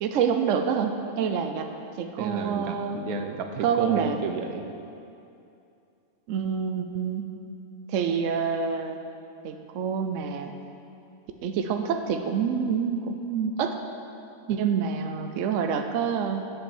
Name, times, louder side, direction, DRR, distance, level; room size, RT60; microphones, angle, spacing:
voice 1, 0.0-1.7 2.0-3.1 3.6-4.2 6.3-7.3 7.9-9.0 9.4-10.5 11.4-13.8 14.5-16.4, right 6 dB, 70° right, 6 dB, 0.9 m, -27 dB
voice 2, 2.2-4.7, right 5 dB, 85° right, 6 dB, 1.2 m, -32 dB
8.8 x 6.8 x 7.2 m, 2.6 s
omnidirectional pair, 1.5 m